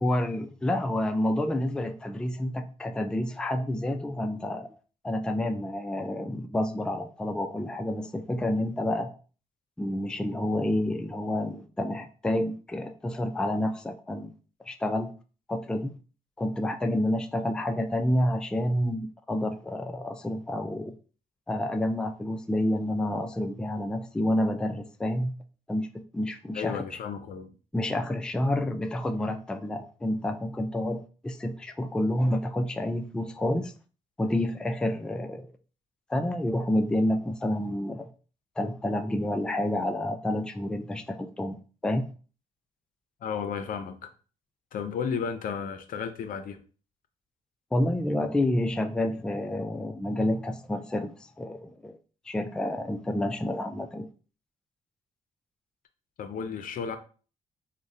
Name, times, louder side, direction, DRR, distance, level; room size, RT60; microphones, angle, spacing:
voice 1, 0.0-4.7 5.0-9.1 9.8-14.3 14.6-15.1 15.5-15.9 16.4-20.9 21.5-25.3 25.7-25.9 26.1-27.0 27.7-33.7 34.2-35.5 36.1-38.1 38.6-42.0 47.7-52.0 52.3-54.1, left 1 dB, 5° left, 0.3 m, -29 dB
voice 2, 26.5-27.5 43.2-44.1 44.7-46.6 56.2-57.0, left 6 dB, 65° left, 0.5 m, -33 dB
3.6 x 2.1 x 2.6 m
supercardioid pair, 65°, 15 cm